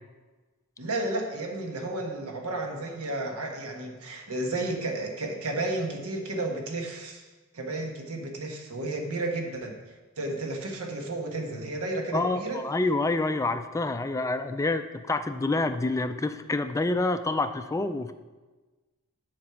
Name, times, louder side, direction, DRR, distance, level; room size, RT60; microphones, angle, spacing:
voice 1, 0.8-7.2 7.5-9.8 10.2-12.6, right 2 dB, 75° right, 2 dB, 1.3 m, -32 dB
voice 2, 12.1-18.1, left 2 dB, 15° left, 9 dB, 0.3 m, -27 dB
7.7 x 5.3 x 6.8 m, 1.3 s
head